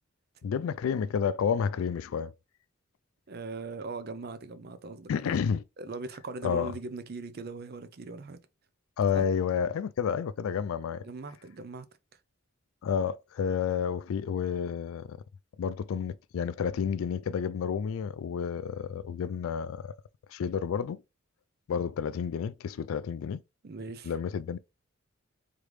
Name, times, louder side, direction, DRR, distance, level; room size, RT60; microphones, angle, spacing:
voice 1, 0.4-2.3 5.1-5.6 6.4-6.7 9.0-11.1 12.8-15.2 15.6-20.0 20.3-21.0 21.7-23.4 24.0-24.6, left 7 dB, 80° left, 0.3 m, -30 dB
voice 2, 3.3-5.4 5.8-8.4 9.1-9.3 11.0-11.9 23.6-24.1, right 3 dB, 50° right, 0.5 m, -40 dB
3.8 x 3.3 x 3.1 m
head